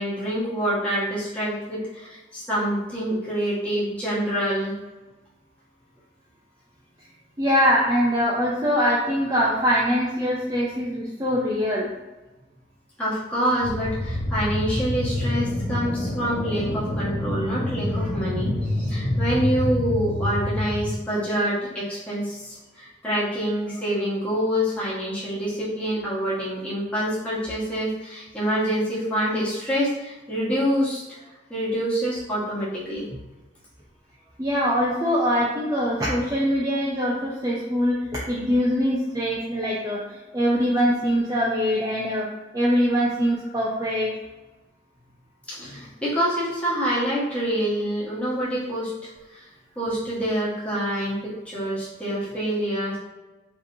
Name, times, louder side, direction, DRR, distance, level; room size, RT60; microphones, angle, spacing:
voice 1, 0.0-4.7 13.0-33.1 45.5-48.9 49.3-49.4 49.7-53.0, equal, 10° left, -9 dB, 1.4 m, -26 dB
voice 2, 7.4-11.9 34.4-38.0 38.3-40.0 40.3-42.3 42.5-44.1, equal, 20° right, -6 dB, 0.6 m, -23 dB
sound 1, 13.6-20.9, left 1 dB, 40° left, 0.7 m, -27 dB
4.9 x 3.2 x 2.7 m, 1.1 s
head